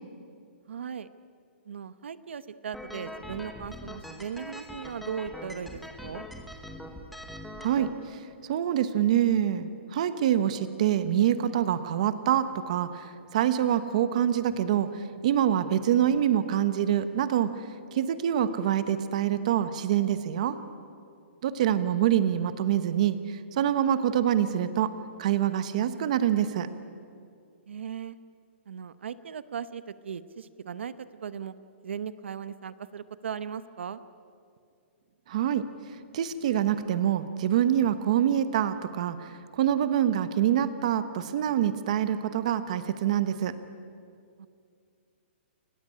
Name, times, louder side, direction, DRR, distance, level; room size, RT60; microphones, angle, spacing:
voice 1, 0.7-1.1 1.7-6.3 21.6-22.0 27.7-28.2 28.7-31.5 31.8-34.0 44.4-44.5, right 7 dB, 75° right, 14 dB, 0.9 m, -38 dB
sound 1, 2.7-7.9, left 1 dB, ahead, 1.1 m, -42 dB
voice 2, 7.6-17.6 17.9-20.6 21.4-26.7 35.3-35.7 36.1-43.6, right 10 dB, 35° right, 12 dB, 1.0 m, -26 dB
29.0 x 15.0 x 9.8 m, 2.3 s
hypercardioid pair, 175°, 6 cm